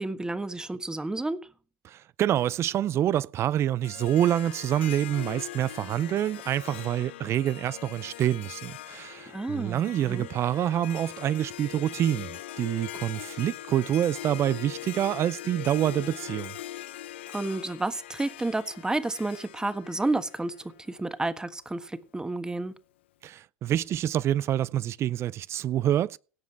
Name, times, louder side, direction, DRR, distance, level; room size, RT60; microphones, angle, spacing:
voice 1, 0.0-1.4 9.3-10.3 17.3-22.7, right 2 dB, 10° right, 1.4 m, -31 dB
voice 2, 1.8-16.6 23.2-26.2, right 11 dB, 45° right, 0.5 m, -27 dB
Harp, 3.8-21.1, left 13 dB, 80° left, 0.7 m, -41 dB
17.0 x 7.1 x 4.7 m
hypercardioid pair, 70°, 6 cm